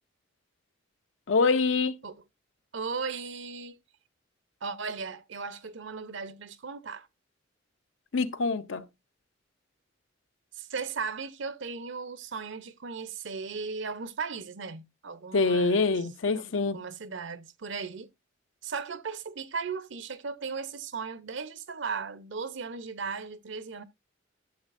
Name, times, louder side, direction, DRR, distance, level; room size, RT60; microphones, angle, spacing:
voice 1, 1.3-2.0 8.1-8.9 15.3-16.8, left 4 dB, 70° left, 0.7 m, -25 dB
voice 2, 2.7-3.8 4.6-7.1 10.5-15.9 16.3-16.4 16.7-18.1 18.6-23.8, right 5 dB, 65° right, 0.7 m, -36 dB
11.5 x 7.4 x 2.5 m
head